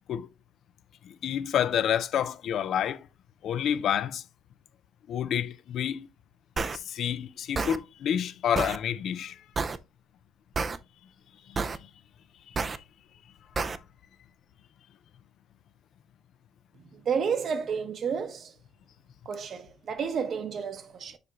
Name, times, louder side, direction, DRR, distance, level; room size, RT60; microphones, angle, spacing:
voice 1, 1.0-3.1 3.4-4.2 5.1-6.1 6.7-9.4 11.5-11.6, left 9 dB, 60° left, 0.5 m, -29 dB
Buncha Crunchy Snares, 6.6-6.8 7.6-7.8 8.6-8.8 9.6-9.8 10.6-10.8 11.6-11.8 12.6-12.8 13.6-13.8, right 4 dB, 30° right, 0.4 m, -29 dB
voice 2, 16.9-18.5 19.3-21.2, right 6 dB, 50° right, 0.9 m, -31 dB
6.7 x 5.1 x 2.9 m
cardioid pair, 120°, 0 cm